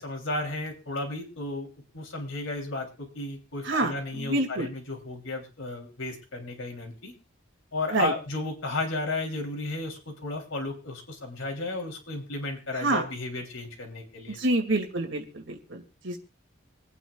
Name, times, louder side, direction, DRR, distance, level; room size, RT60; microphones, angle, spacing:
voice 1, 0.0-1.7 1.9-7.1 7.7-14.4, left 2 dB, 80° left, 2 dB, 3.4 m, -34 dB
voice 2, 3.6-4.7 7.9-8.1 12.8-13.0 14.3-16.2, right 2 dB, 60° right, 3 dB, 2.5 m, -27 dB
26.0 x 9.2 x 2.4 m, 0.30 s
head